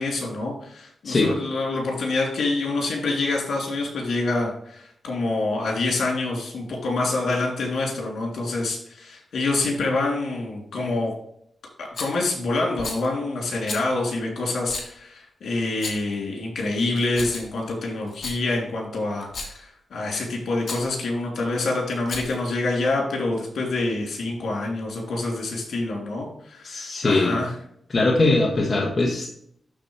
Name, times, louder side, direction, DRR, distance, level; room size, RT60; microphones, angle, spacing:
voice 1, 0.0-11.1 11.8-27.5, left 2 dB, 75° left, -1 dB, 3.2 m, -26 dB
Rattle, 11.9-12.2 12.8-13.1 13.7-13.9 14.7-14.9 15.7-16.1 16.9-17.6 18.1-18.4 19.2-19.6 20.6-20.9 21.9-22.5, left 3 dB, 55° left, 2.1 m, -34 dB
voice 2, 26.6-27.4 27.9-29.3, left 2 dB, 35° left, -2 dB, 1.5 m, -21 dB
12.0 x 4.3 x 3.3 m, 0.67 s
wide cardioid pair, 130°, 0 cm